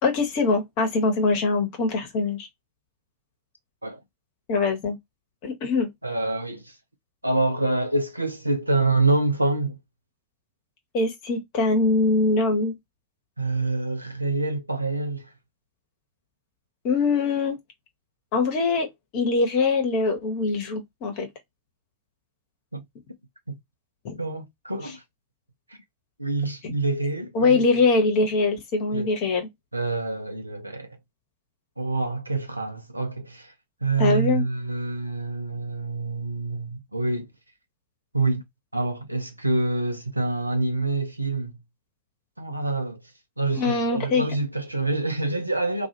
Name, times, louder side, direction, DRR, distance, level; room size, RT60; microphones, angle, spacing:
voice 1, 0.0-2.5 4.5-5.0 5.4-5.9 10.9-12.7 16.8-17.6 18.3-18.9 19.1-21.3 24.0-24.2 27.3-29.5 34.0-34.4 43.5-44.2, left 3 dB, 45° left, 0.9 m, -23 dB
voice 2, 6.0-6.8 7.2-9.8 13.4-15.3 22.7-22.8 23.5-23.6 24.2-25.0 25.7-25.8 26.2-27.6 28.9-29.1 29.7-31.0 31.8-33.5 33.8-37.3 38.1-38.4 38.7-41.6 42.4-43.0 43.4-45.9, right 3 dB, 85° right, 0.5 m, -26 dB
2.4 x 2.3 x 2.7 m
figure-of-eight pair, 90°, 0 cm